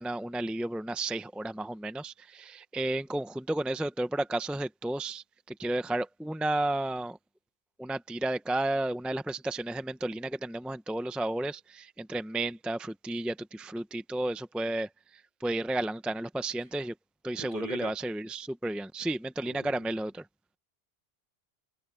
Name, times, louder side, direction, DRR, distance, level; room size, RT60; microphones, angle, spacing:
voice 1, 0.0-5.2 5.6-7.2 7.8-14.9 15.4-16.9 17.2-20.2, right 1 dB, ahead, 0.6 m, -32 dB
voice 2, 17.4-18.0 19.5-20.0, right 1 dB, 55° right, 2.7 m, -42 dB
omnidirectional pair, 1.1 m